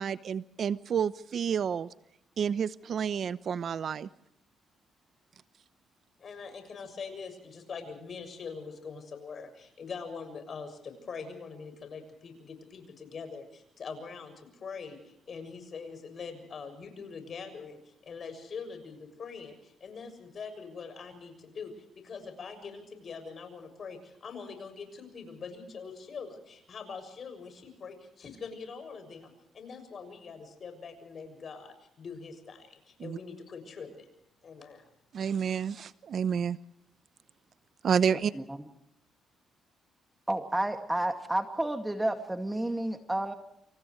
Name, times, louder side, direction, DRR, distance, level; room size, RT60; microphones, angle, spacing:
voice 1, 0.0-1.9 2.4-4.1 33.0-33.2 35.1-36.6 37.8-38.3, right 7 dB, 55° right, 15 dB, 0.8 m, -29 dB
voice 2, 6.2-34.1 34.4-34.8, left 5 dB, 50° left, 8 dB, 6.9 m, -43 dB
voice 3, 40.3-43.3, right 1 dB, 10° right, 6 dB, 2.1 m, -31 dB
28.5 x 27.5 x 3.2 m, 0.78 s
cardioid pair, 90°, 0 cm